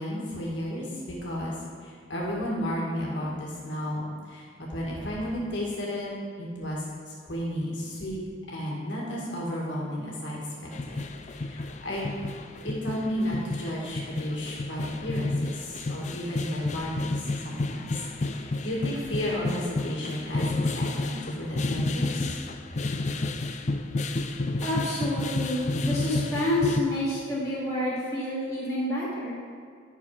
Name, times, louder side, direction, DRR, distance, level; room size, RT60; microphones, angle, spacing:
voice 1, 0.0-1.6 1.8-4.0 4.3-6.1 6.4-8.2 8.5-11.0 11.3-12.0 12.6-22.4, equal, 70° left, -4 dB, 2.0 m, -33 dB
sound 1, 10.7-26.8, left 2 dB, 35° left, 0.4 m, -31 dB
voice 2, 24.6-29.4, left 1 dB, 15° left, -9 dB, 2.7 m, -28 dB
10.5 x 6.6 x 4.9 m, 2.1 s
head